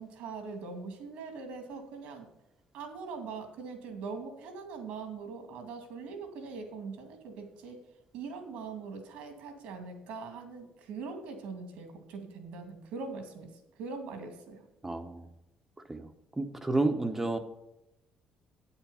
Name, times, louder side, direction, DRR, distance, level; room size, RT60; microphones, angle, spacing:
voice 1, 0.0-2.3 2.7-7.8 8.1-13.5 13.8-14.6, right 4 dB, 90° right, 6 dB, 2.2 m, -42 dB
voice 2, 14.8-15.3 15.9-17.4, right 2 dB, 15° right, 7 dB, 0.8 m, -31 dB
8.7 x 7.2 x 5.5 m, 0.90 s
cardioid pair, 130°, 2 cm